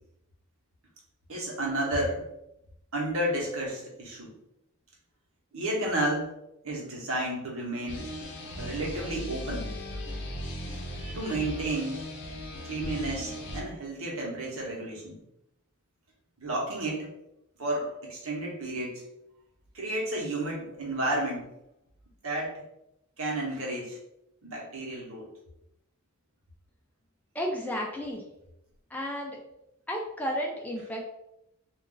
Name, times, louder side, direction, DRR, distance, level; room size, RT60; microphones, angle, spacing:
voice 1, 1.3-2.3 2.9-4.3 5.5-6.3 6.6-8.1 8.6-9.7 11.0-12.1 12.6-15.2 16.4-17.1 17.6-19.0 19.7-21.5 22.2-22.6 23.2-24.0 24.4-25.3, right 1 dB, 70° right, -3 dB, 1.0 m, -32 dB
sound 1, 7.9-13.6, left 1 dB, 55° left, 0.6 m, -37 dB
voice 2, 27.3-28.2 28.9-29.4 29.9-31.0, equal, 5° left, 0 dB, 0.3 m, -32 dB
2.5 x 2.3 x 3.8 m, 0.84 s
head